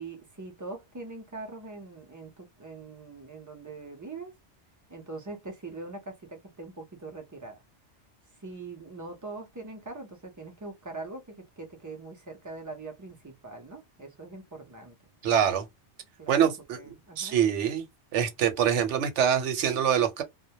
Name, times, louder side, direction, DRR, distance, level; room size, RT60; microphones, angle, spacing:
voice 1, 0.0-4.3 4.9-7.6 8.4-15.0 16.2-17.4, right 3 dB, 25° right, 0.4 m, -42 dB
voice 2, 15.2-15.6 16.3-17.8 18.1-20.2, right 8 dB, 90° right, 0.9 m, -25 dB
2.2 x 2.1 x 2.7 m
omnidirectional pair, 1.2 m